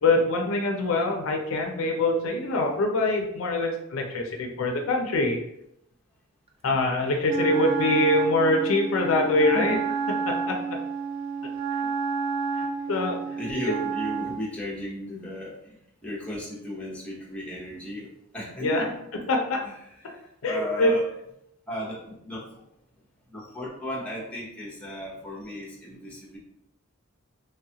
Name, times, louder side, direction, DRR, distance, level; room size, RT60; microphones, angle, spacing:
voice 1, 0.0-5.4 6.6-9.8 10.3-10.6 12.6-13.4 18.6-18.9 19.3-19.6 20.4-20.9, left 2 dB, 75° left, 2 dB, 0.5 m, -24 dB
Wind instrument woodwind instrument, 7.2-14.5, right 5 dB, 25° right, 0.3 m, -30 dB
voice 2, 13.4-15.5 16.0-18.1 18.3-18.9 19.6-21.0 21.7-22.4 23.3-26.4, equal, 5° left, -6 dB, 0.8 m, -35 dB
3.3 x 2.3 x 2.8 m, 0.77 s
head